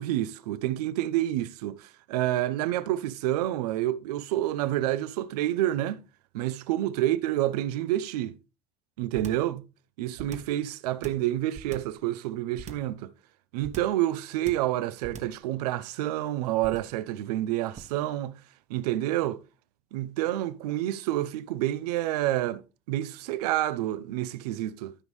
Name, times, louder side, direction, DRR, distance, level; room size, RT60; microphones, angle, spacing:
voice 1, 0.0-6.0 6.3-8.3 9.0-9.6 10.0-13.1 13.5-18.4 18.7-19.4 19.9-22.6 22.9-25.0, right 14 dB, 85° right, 0.7 m, -28 dB
sound 1, 9.1-9.5 10.2-10.6 11.0-12.0 12.6-13.0 13.6-14.0 14.5-14.8 15.0-15.4 16.6-17.0 17.8-18.0, right 6 dB, 35° right, 1.3 m, -42 dB
13.5 x 5.4 x 3.2 m
supercardioid pair, 100°, 20 cm